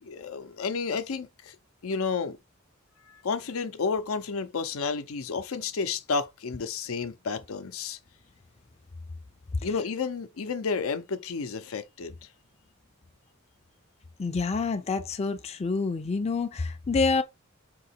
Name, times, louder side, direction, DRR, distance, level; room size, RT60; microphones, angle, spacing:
voice 1, 0.0-1.6 1.8-2.4 3.0-8.0 9.6-12.3, left 5 dB, 90° left, 0.6 m, -31 dB
voice 2, 14.2-17.2, left 4 dB, 30° left, 0.4 m, -27 dB
3.8 x 2.8 x 4.2 m
head